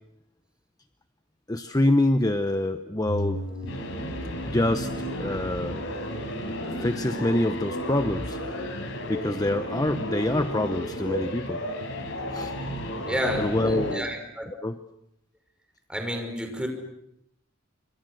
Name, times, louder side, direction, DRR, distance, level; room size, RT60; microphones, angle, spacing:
voice 1, 1.5-3.4 4.4-4.9 5.2-5.8 6.8-8.4 9.1-11.6 12.3-12.5 13.4-14.1 14.5-14.8, left 1 dB, 20° left, 9 dB, 0.9 m, -26 dB
sound 1, 3.0-14.0, equal, 70° left, 5.4 m, -33 dB
voice 2, 13.0-14.5 15.9-16.7, equal, 5° right, 4 dB, 6.0 m, -31 dB
29.5 x 27.0 x 6.5 m, 0.80 s
head